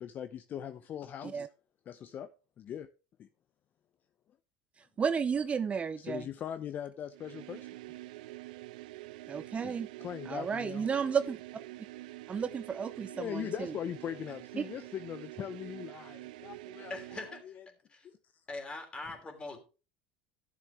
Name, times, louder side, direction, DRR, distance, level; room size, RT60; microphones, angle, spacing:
voice 1, 0.0-1.4 1.9-2.3 2.6-2.9 3.2-3.3 6.0-7.7 9.6-9.7 10.0-10.9 13.1-17.5 18.0-18.2, left 9 dB, 40° left, 11 dB, 0.6 m, -40 dB
voice 2, 5.0-6.3 9.3-9.9 10.3-11.4 12.3-13.7 14.6-14.7, right 6 dB, 25° right, 14 dB, 0.5 m, -32 dB
sound 1, 7.1-17.5, right 17 dB, 75° right, 0.4 m, -47 dB
voice 3, 16.9-17.6 17.9-18.1 18.5-19.6, left 3 dB, 25° left, 4 dB, 3.2 m, -42 dB
12.5 x 7.2 x 3.4 m, 0.33 s
hypercardioid pair, 85°, 5 cm